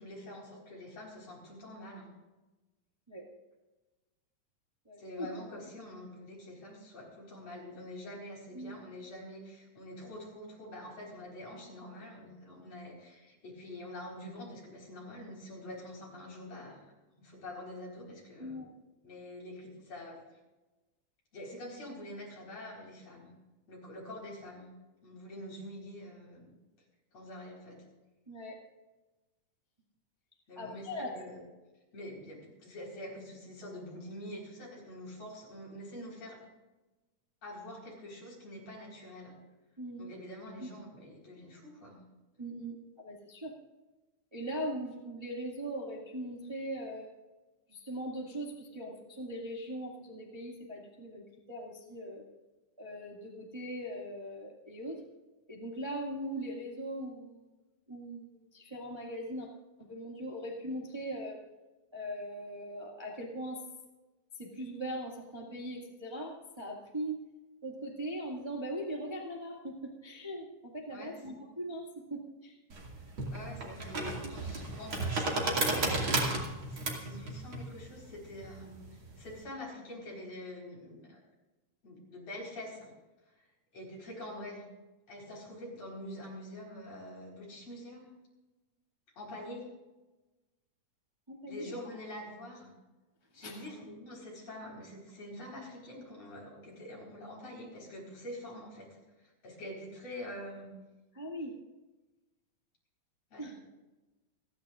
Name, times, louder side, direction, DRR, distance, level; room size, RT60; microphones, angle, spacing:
voice 1, 0.0-2.1 5.0-16.9 17.2-18.6 19.0-20.4 21.3-23.3 23.7-24.7 25.0-26.5 27.1-27.8 30.5-31.4 31.9-36.4 37.4-39.3 40.0-42.0 70.9-71.1 73.3-81.2 81.8-82.9 83.3-83.4 83.7-84.6 85.1-88.1 89.2-89.7 91.5-92.7 93.3-100.7 103.3-103.6, left 1 dB, 55° left, -3 dB, 5.5 m, -46 dB
voice 2, 4.8-5.3 8.5-8.8 18.4-18.7 28.3-28.6 30.6-31.1 39.8-40.0 40.6-40.7 42.4-43.5 44.3-47.1 47.7-52.2 52.8-55.0 55.5-57.5 57.9-59.5 59.9-61.4 61.9-63.6 64.4-67.2 67.6-70.5 70.7-72.5 91.3-91.7 93.4-93.7 101.1-101.5 103.4-103.5, right 1 dB, 10° right, -2 dB, 1.6 m, -40 dB
sound 1, 72.7-79.4, right 2 dB, 45° right, 3.0 m, -34 dB
29.0 x 10.5 x 2.5 m, 1.1 s
omnidirectional pair, 3.5 m